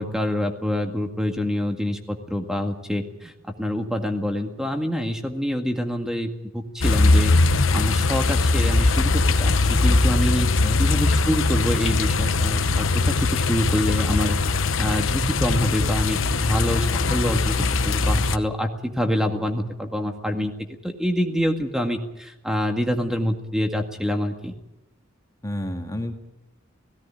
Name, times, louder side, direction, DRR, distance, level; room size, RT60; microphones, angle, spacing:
voice 1, 0.0-3.3 3.6-14.4 14.8-17.6 17.8-20.5 20.8-24.5, equal, 5° right, 5 dB, 2.0 m, -26 dB
sound 1, 6.8-18.4, left 3 dB, 75° left, 1.0 m, -21 dB
voice 2, 10.4-10.9 25.4-26.1, left 1 dB, 15° left, 4 dB, 1.9 m, -31 dB
17.0 x 16.5 x 9.9 m, 0.90 s
head